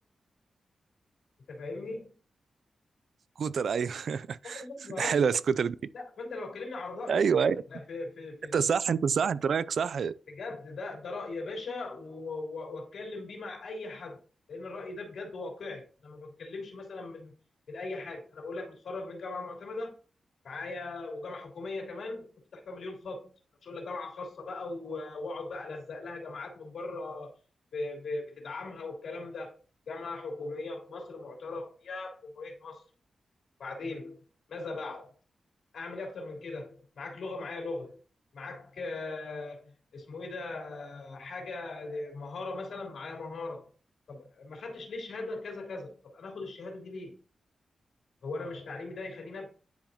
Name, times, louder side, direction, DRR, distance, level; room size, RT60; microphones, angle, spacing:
voice 1, 1.5-2.1 4.5-5.3 5.9-7.3 7.7-8.6 10.3-14.2 14.5-17.3 17.7-19.9 20.4-23.3 23.6-27.3 27.7-29.6 29.9-32.8 33.6-34.2 34.5-35.1 35.7-38.0 38.3-43.7 44.1-47.2 48.2-49.5, left 3 dB, 70° left, 3.1 m, -39 dB
voice 2, 3.4-4.6 5.0-5.8 7.1-7.6 8.5-10.1, right 6 dB, 65° right, 0.3 m, -27 dB
10.5 x 4.9 x 2.8 m
wide cardioid pair, 165°, 0 cm